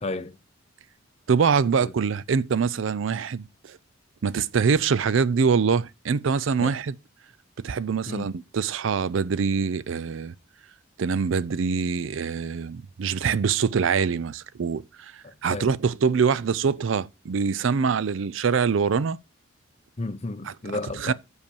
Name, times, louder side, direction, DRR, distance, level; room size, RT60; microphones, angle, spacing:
voice 1, 0.0-0.4 1.8-1.9 6.6-6.7 8.1-8.3 15.5-15.7 20.0-21.1, left 2 dB, 30° left, 0.6 m, -32 dB
voice 2, 1.3-3.8 4.2-7.0 7.6-10.3 11.0-15.1 15.4-19.2 20.4-20.5 20.9-21.1, right 5 dB, 65° right, 0.4 m, -24 dB
6.4 x 5.2 x 7.0 m
head